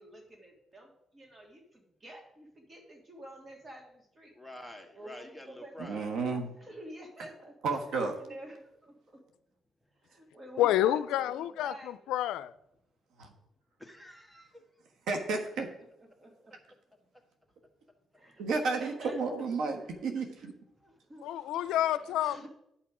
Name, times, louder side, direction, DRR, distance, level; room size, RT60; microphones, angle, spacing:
voice 1, 0.0-4.3 4.9-5.7 6.1-7.5 8.1-9.2 10.0-12.1 15.5-16.6 18.1-19.2 19.8-20.0 20.8-21.4 22.2-22.5, right 1 dB, 30° right, 2.6 m, -49 dB
voice 2, 4.4-6.1 7.7-7.8 8.3-8.4 13.8-14.6, left 1 dB, ahead, 1.5 m, -48 dB
voice 3, 5.8-6.5 7.6-8.1 13.2-13.3 15.1-15.7 18.4-20.5, right 4 dB, 80° right, 1.4 m, -32 dB
voice 4, 10.6-12.5 19.3-19.4 21.2-22.5, left 12 dB, 90° left, 0.4 m, -29 dB
10.5 x 5.9 x 4.9 m
cardioid pair, 90°, 0 cm